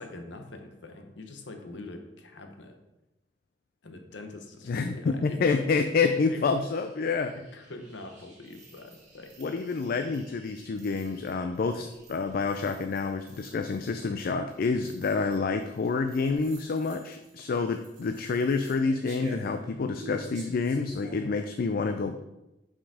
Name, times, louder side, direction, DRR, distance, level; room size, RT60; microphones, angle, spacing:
voice 1, 0.0-2.7 3.8-5.6 6.3-6.4 7.5-9.9, left 2 dB, 85° left, 5 dB, 0.9 m, -44 dB
voice 2, 4.7-7.3 9.4-22.2, left 4 dB, 55° left, 7 dB, 0.4 m, -28 dB
sound 1, 6.4-21.3, right 2 dB, 45° right, 1.7 m, -51 dB
6.0 x 5.0 x 4.8 m, 0.97 s
head